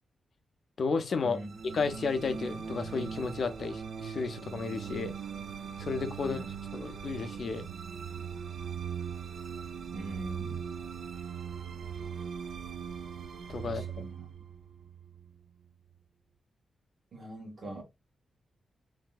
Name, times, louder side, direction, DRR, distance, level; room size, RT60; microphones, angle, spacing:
voice 1, 0.8-1.4 1.7-5.2 5.8-6.4 6.7-7.7 13.5-14.1, left 4 dB, 55° left, 0.5 m, -33 dB
sound 1, 1.3-15.7, right 7 dB, 70° right, 0.4 m, -40 dB
voice 2, 9.9-10.6 13.6-14.3 17.1-17.8, right 2 dB, 55° right, 1.2 m, -42 dB
3.1 x 2.7 x 2.3 m
wide cardioid pair, 125°, 0 cm